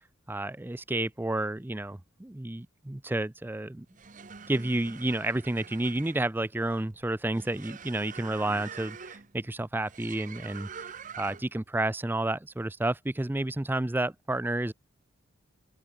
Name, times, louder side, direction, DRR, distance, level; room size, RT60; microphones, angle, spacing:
voice 1, 0.3-3.9 4.5-10.7 11.2-14.7, right 1 dB, 10° right, 0.4 m, -30 dB
sound 1, 3.8-11.6, right 6 dB, 40° right, 0.9 m, -45 dB
open air
head